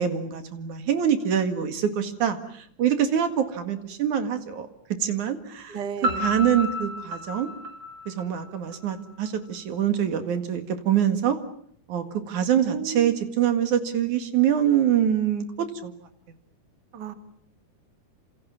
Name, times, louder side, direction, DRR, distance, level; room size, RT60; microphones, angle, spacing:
voice 1, 0.0-5.8 6.2-7.5 8.1-11.4 11.9-15.9, right 9 dB, 75° right, 8 dB, 3.4 m, -25 dB
voice 2, 5.7-6.4 12.5-13.2 16.9-17.1, right 7 dB, 40° right, 8 dB, 2.1 m, -34 dB
Piano, 6.0-8.8, equal, 55° right, 5.4 m, -31 dB
28.5 x 27.0 x 7.2 m, 0.63 s
omnidirectional pair, 3.6 m